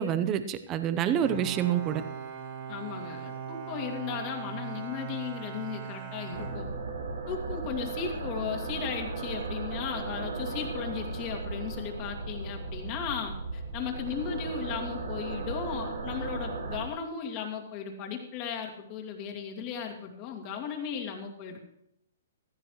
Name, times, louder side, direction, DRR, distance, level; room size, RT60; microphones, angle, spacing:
voice 1, 0.0-2.0, right 9 dB, 25° right, 11 dB, 0.8 m, -27 dB
Bowed string instrument, 1.2-7.4, right 7 dB, 50° right, 3.1 m, -40 dB
voice 2, 2.7-6.7 7.3-21.6, left 7 dB, 35° left, 2 dB, 2.4 m, -36 dB
sound 1, 6.3-16.9, right 3 dB, 85° right, 1.8 m, -36 dB
15.5 x 13.5 x 3.2 m, 0.77 s
hypercardioid pair, 140°, 0 cm